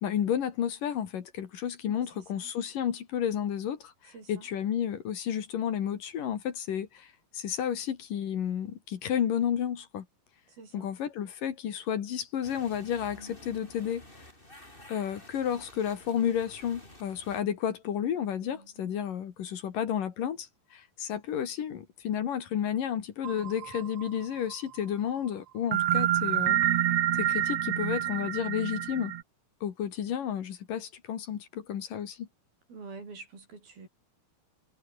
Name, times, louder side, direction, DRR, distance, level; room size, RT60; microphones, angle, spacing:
voice 1, 0.0-10.1 10.7-14.0 14.9-26.6 27.1-29.1 29.6-32.3, left 9 dB, 60° left, 3.4 m, -32 dB
sound 1, 12.4-17.4, left 1 dB, 10° left, 6.7 m, -51 dB
voice 2, 18.4-19.1 32.7-33.9, right 4 dB, 70° right, 9.0 m, -47 dB
sound 2, 23.2-24.5 25.7-29.2, right 12 dB, 85° right, 1.3 m, -28 dB
omnidirectional pair, 4.4 m